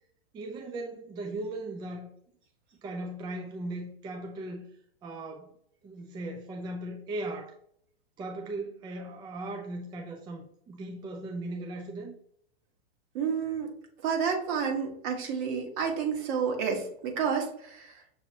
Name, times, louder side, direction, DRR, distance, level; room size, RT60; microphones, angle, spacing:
voice 1, 0.3-2.1 2.8-4.7 5.0-5.5 5.8-7.6 8.2-12.1, right 2 dB, 15° right, 0.4 m, -38 dB
voice 2, 13.1-13.7 14.0-18.0, right 6 dB, 50° right, 1.5 m, -30 dB
6.8 x 2.7 x 2.8 m
hypercardioid pair, 115°, 32 cm